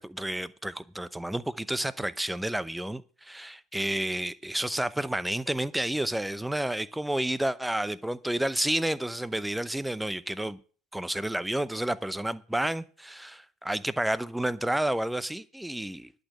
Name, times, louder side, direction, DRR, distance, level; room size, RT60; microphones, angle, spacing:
voice 1, 0.0-10.6 10.9-16.1, right 1 dB, 5° right, 17 dB, 0.7 m, -30 dB
11.5 x 6.6 x 7.5 m, 0.40 s
figure-of-eight pair, 70°, 0 cm